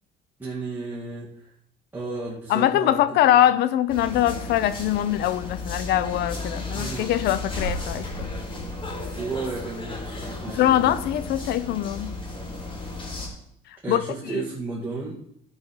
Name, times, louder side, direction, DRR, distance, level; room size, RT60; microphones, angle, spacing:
voice 1, 0.4-1.5 1.9-3.0 6.7-7.1 9.1-11.0 13.8-15.2, right 3 dB, 10° right, 2.4 m, -33 dB
voice 2, 2.5-8.3 10.5-12.1 13.9-14.0 14.3-14.4, left 12 dB, 75° left, 0.7 m, -22 dB
sound 1, 3.9-13.3, left 2 dB, 30° left, 4.0 m, -34 dB
13.5 x 5.4 x 5.4 m
cardioid pair, 110°, 17 cm